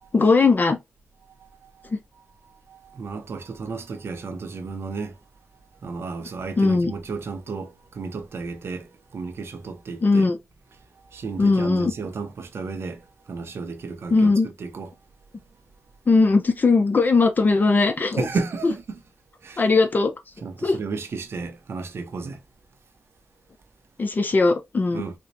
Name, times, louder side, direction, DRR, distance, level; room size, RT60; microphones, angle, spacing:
voice 1, 0.1-0.8 1.9-2.0 6.6-6.9 10.0-10.4 11.4-11.9 14.1-14.5 16.1-18.3 19.6-20.1 20.6-20.8 24.0-25.0, left 3 dB, 45° left, 0.6 m, -19 dB
voice 2, 1.4-1.9 2.5-5.2 5.8-10.3 11.0-14.3 14.6-14.9 18.2-19.0 19.4-19.6 20.4-22.4 24.9-25.1, right 4 dB, 70° right, 0.7 m, -33 dB
4.2 x 2.2 x 2.6 m
cardioid pair, 80°, 4 cm